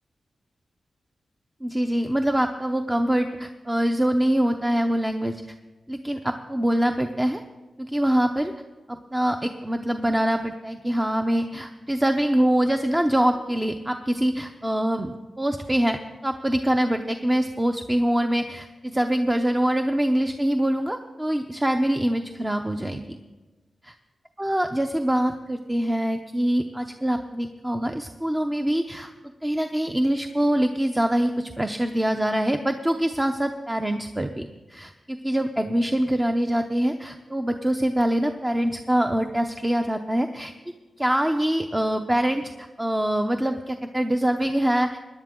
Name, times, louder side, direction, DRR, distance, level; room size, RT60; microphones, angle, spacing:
voice 1, 1.6-5.4 5.9-7.4 7.8-8.5 8.9-23.2 23.8-23.9 24.4-29.1 29.4-40.5 41.0-45.1, right 1 dB, 15° right, 6 dB, 0.6 m, -24 dB
18.0 x 10.5 x 3.7 m, 1.2 s
cardioid pair, 60°, 0 cm